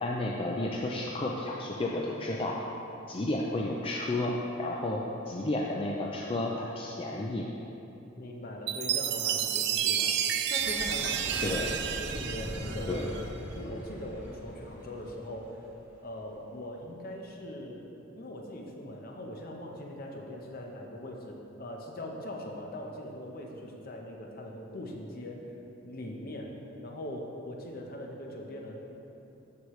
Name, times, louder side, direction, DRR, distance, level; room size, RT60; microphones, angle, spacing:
voice 1, 0.0-2.6 3.1-4.3 4.6-7.5 11.4-11.7 12.9-13.1, left 2 dB, 30° left, -2 dB, 0.4 m, -32 dB
voice 2, 8.2-10.1 10.5-13.1 13.6-15.6 16.0-17.8 18.1-25.4 25.8-26.5 26.8-28.8, left 1 dB, 50° left, 1 dB, 0.9 m, -41 dB
Chime, 8.7-13.3, right 9 dB, 55° right, 0.4 m, -31 dB
sound 1, 10.6-16.4, equal, 10° right, 1.4 m, -41 dB
12.5 x 4.8 x 3.1 m, 2.9 s
head